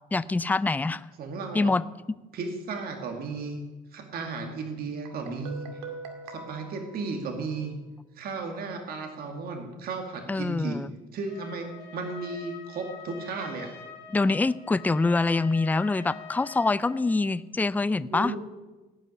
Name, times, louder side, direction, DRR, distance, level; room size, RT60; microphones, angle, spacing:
voice 1, 0.1-1.1 1.5-1.8 10.3-10.9 14.1-18.3, left 3 dB, 10° left, 17 dB, 0.4 m, -25 dB
voice 2, 1.2-1.7 2.3-3.6 3.9-5.7 6.3-7.7 8.2-10.8 11.1-13.7 18.1-18.4, right 4 dB, 60° right, 4 dB, 2.2 m, -34 dB
Guitar, 5.1-7.8, right 4 dB, 85° right, 2.1 m, -43 dB
Trumpet, 11.3-17.1, left 6 dB, 85° left, 3.9 m, -45 dB
17.5 x 6.0 x 9.5 m, 1.2 s
cardioid pair, 110°, 17 cm